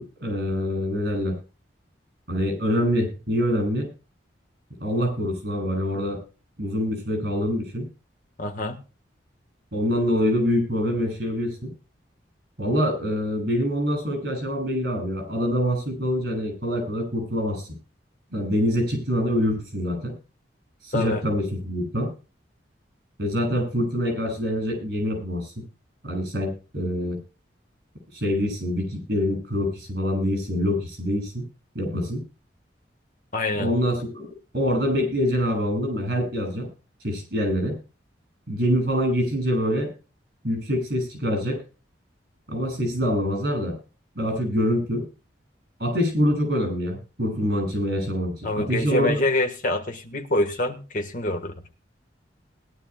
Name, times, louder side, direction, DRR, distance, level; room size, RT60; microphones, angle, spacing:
voice 1, 0.0-1.3 2.3-3.9 4.8-6.2 6.6-7.9 9.7-11.7 12.6-17.8 18.3-20.1 20.8-22.1 23.2-25.5 26.0-27.2 28.1-31.5 31.8-32.2 33.6-34.3 34.5-36.7 37.0-37.8 38.5-39.9 40.4-41.6 42.5-43.8 44.2-45.1 45.8-49.2, equal, 55° right, 7.2 m, -25 dB
voice 2, 8.4-8.8 20.9-21.2 33.3-33.7 48.4-51.5, left 2 dB, 45° left, 1.5 m, -26 dB
20.5 x 11.5 x 2.3 m
head